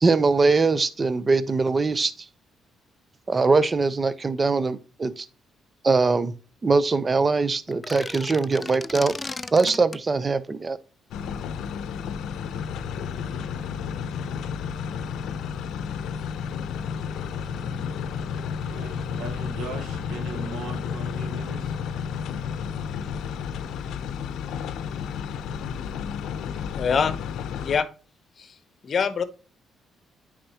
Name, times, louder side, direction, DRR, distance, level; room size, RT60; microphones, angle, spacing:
voice 1, 0.0-2.1 3.3-5.3 5.8-6.3 6.6-9.1 9.5-10.8, right 4 dB, 30° right, 0.6 m, -22 dB
sound 1, 7.7-10.0, left 3 dB, 20° left, 0.3 m, -36 dB
sound 2, 11.1-27.8, left 7 dB, 80° left, 0.6 m, -32 dB
voice 2, 18.7-21.7, right 4 dB, 90° right, 1.4 m, -39 dB
voice 3, 26.7-27.1 27.6-27.9 28.4-28.5 28.8-29.2, left 6 dB, 50° left, 0.9 m, -24 dB
8.7 x 5.0 x 2.8 m
cardioid pair, 90°, 0 cm